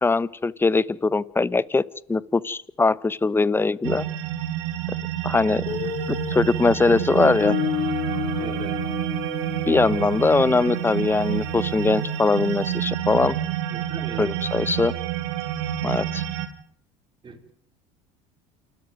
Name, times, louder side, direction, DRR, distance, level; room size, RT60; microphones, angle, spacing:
voice 1, 0.0-4.1 5.2-5.7 6.3-7.5 9.7-13.4 14.2-14.9 15.8-16.2, left 3 dB, 15° left, 20 dB, 0.9 m, -21 dB
sound 1, 3.8-16.5, right 12 dB, 85° right, 2.8 m, -28 dB
Guitar, 5.7-12.3, left 9 dB, 45° left, 5.9 m, -32 dB
voice 2, 5.7-6.0 8.4-8.8 13.7-14.3 17.2-17.4, right 4 dB, 30° right, 6 dB, 4.9 m, -39 dB
28.0 x 13.5 x 9.3 m, 0.65 s
supercardioid pair, 95°, 15 cm